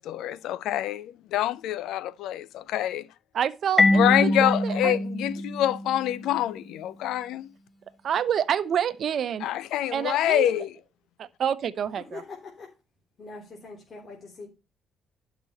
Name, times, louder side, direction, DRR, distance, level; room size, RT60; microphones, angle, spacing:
voice 1, 0.0-3.1 3.9-7.5 9.4-10.7, left 12 dB, 85° left, 0.5 m, -26 dB
voice 2, 3.3-5.0 8.0-9.5 9.9-10.5 11.2-12.2, right 8 dB, 60° right, 0.9 m, -28 dB
Marimba xylophone, 3.8-6.4, left 1 dB, 15° left, 1.1 m, -24 dB
voice 3, 12.1-12.7 13.2-14.5, left 3 dB, 45° left, 3.2 m, -42 dB
12.0 x 6.1 x 4.2 m
cardioid pair, 90°, 0 cm